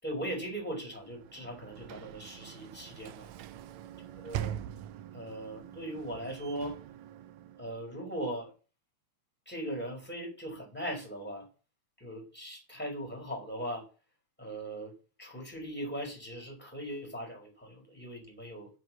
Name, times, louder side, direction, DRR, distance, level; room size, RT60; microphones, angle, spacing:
voice 1, 0.0-3.3 4.1-4.9 5.1-6.8 7.6-8.5 9.5-11.5 12.0-13.9 14.4-18.7, right 1 dB, 5° left, 4.5 m, -39 dB
Sliding door / Slam, 0.9-7.9, right 10 dB, 75° right, 1.8 m, -43 dB
8.3 x 6.3 x 7.2 m
omnidirectional pair, 3.5 m